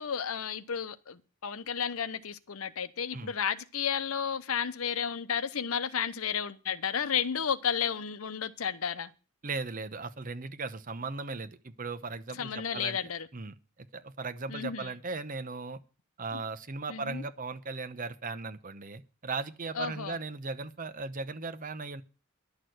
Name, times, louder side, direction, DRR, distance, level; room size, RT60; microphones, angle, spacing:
voice 1, 0.0-9.1 12.3-13.3 14.5-14.9 16.3-16.4 16.9-17.2 19.7-20.2, left 7 dB, 90° left, 0.8 m, -32 dB
voice 2, 9.4-13.0 13.3-15.8 16.2-22.0, right 4 dB, 40° right, 0.9 m, -37 dB
11.5 x 6.6 x 7.8 m
head